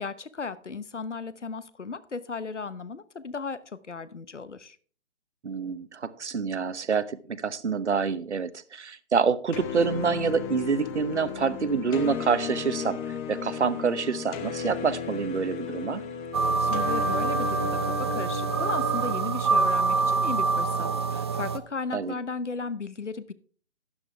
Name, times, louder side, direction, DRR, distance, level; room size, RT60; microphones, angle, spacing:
voice 1, 0.0-4.8 16.6-23.3, left 4 dB, 80° left, 16 dB, 1.0 m, -35 dB
voice 2, 5.4-13.0 13.3-16.0 21.9-22.2, right 5 dB, 70° right, 15 dB, 1.0 m, -27 dB
sound 1, 9.5-19.1, left 7 dB, 20° left, 1.1 m, -35 dB
sound 2, 16.3-21.6, right 4 dB, 25° right, 0.5 m, -26 dB
12.5 x 9.6 x 3.4 m, 0.42 s
figure-of-eight pair, 135°, 35 cm